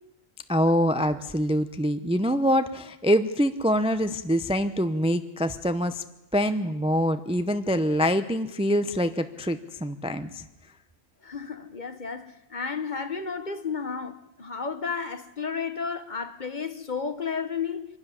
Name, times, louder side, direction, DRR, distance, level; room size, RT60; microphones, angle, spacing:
voice 1, 0.5-6.0 6.3-10.4, equal, 5° right, 0.6 m, -25 dB
voice 2, 11.2-17.8, left 5 dB, 40° left, 1.1 m, -32 dB
24.5 x 12.5 x 9.8 m
omnidirectional pair, 1.3 m